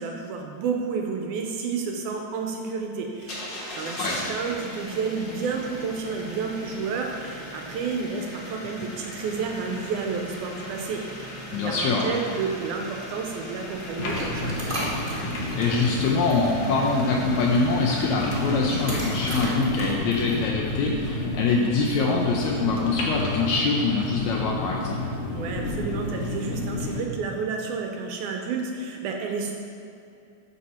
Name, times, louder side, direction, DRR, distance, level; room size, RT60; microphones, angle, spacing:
voice 1, 0.0-14.7 25.3-29.5, right 5 dB, 75° right, 2 dB, 2.0 m, -31 dB
sound 1, 3.2-19.4, left 1 dB, 45° left, 1.8 m, -39 dB
voice 2, 11.5-12.2 15.6-25.0, left 4 dB, 80° left, -1 dB, 1.7 m, -24 dB
sound 2, 13.7-21.5, right 1 dB, 45° right, 1.0 m, -37 dB
sound 3, 14.0-27.0, left 2 dB, 65° left, 1.6 m, -30 dB
12.0 x 4.2 x 4.2 m, 2.6 s
omnidirectional pair, 3.8 m